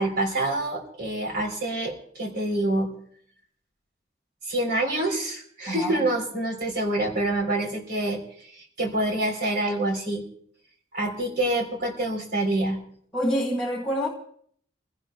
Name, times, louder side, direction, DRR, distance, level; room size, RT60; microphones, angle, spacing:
voice 1, 0.0-2.9 4.5-10.2 10.9-12.8, right 1 dB, 55° right, 3.5 m, -27 dB
voice 2, 5.7-6.0 13.1-14.1, equal, 5° left, 2.2 m, -26 dB
28.0 x 17.0 x 2.3 m
head